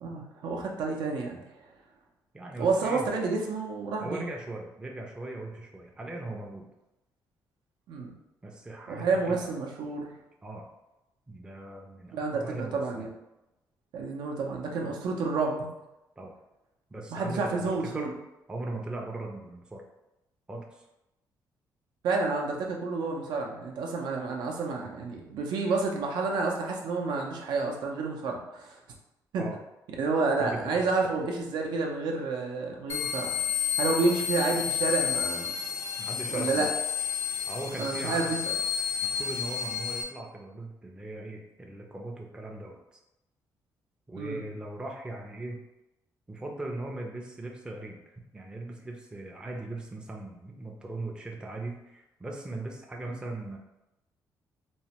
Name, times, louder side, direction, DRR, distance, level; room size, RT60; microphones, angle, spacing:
voice 1, 0.0-1.4 2.6-4.3 7.9-8.1 8.9-10.1 12.1-12.4 12.7-13.1 13.9-15.7 17.1-18.1 22.0-28.8 29.3-29.4 30.0-33.3 33.8-35.5 36.3-36.7 37.8-38.4 44.2-44.4 53.1-53.2, right 3 dB, 85° right, 0 dB, 0.5 m, -29 dB
voice 2, 2.3-3.1 4.0-6.7 8.4-9.6 10.4-10.7 11.3-13.1 16.2-16.4 16.9-18.1 18.5-19.8 20.5-20.8 29.4-29.6 30.4-31.1 36.0-36.7 37.5-38.3 39.0-43.0 44.1-45.6 46.3-53.6, right 2 dB, 10° right, 0 dB, 0.4 m, -39 dB
sound 1, 32.9-40.0, left 8 dB, 40° left, 0.5 m, -31 dB
3.0 x 2.1 x 2.9 m, 0.92 s
cardioid pair, 130°, 7 cm